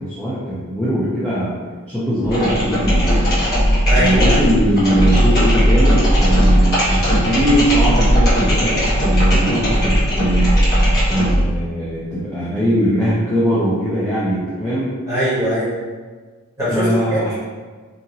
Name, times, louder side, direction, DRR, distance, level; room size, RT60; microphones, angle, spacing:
voice 1, 0.0-1.5 1.9-3.2 4.0-10.5 11.1-14.9 16.7-17.3, equal, 5° left, -11 dB, 0.5 m, -20 dB
sound 1, 2.2-11.5, equal, 45° left, 1.2 m, -16 dB
voice 2, 3.8-4.4 15.1-15.7 16.6-17.3, right 1 dB, 15° right, -13 dB, 1.4 m, -21 dB
2.8 x 2.6 x 2.6 m, 1.4 s
head